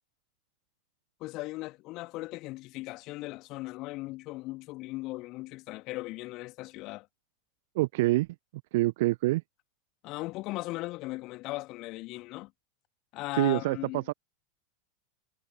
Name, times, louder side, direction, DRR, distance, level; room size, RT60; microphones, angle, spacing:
voice 1, 1.2-7.1 10.0-12.5 13.1-14.0, left 20 dB, 40° left, 2.1 m, -38 dB
voice 2, 7.7-8.3 8.7-9.4 13.4-14.1, right 19 dB, 55° right, 1.0 m, -26 dB
figure-of-eight pair, 85°, 0 cm